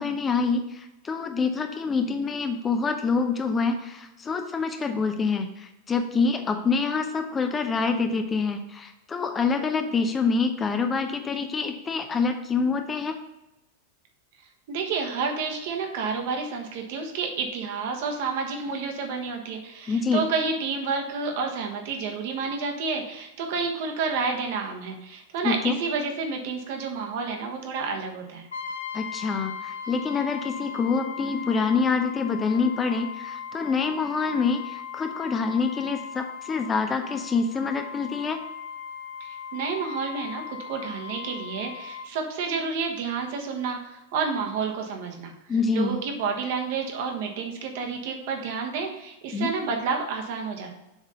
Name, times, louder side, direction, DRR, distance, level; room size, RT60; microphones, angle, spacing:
voice 1, 0.0-13.1 19.9-20.2 25.4-25.7 28.9-38.4 45.5-46.0 49.3-49.5, left 4 dB, 20° left, 6 dB, 0.6 m, -26 dB
voice 2, 14.7-28.5 39.2-50.7, right 5 dB, 50° right, 3 dB, 1.2 m, -30 dB
Brass instrument, 28.5-42.1, left 8 dB, 70° left, 0.7 m, -38 dB
7.2 x 3.7 x 5.5 m, 0.95 s
figure-of-eight pair, 90°, 0 cm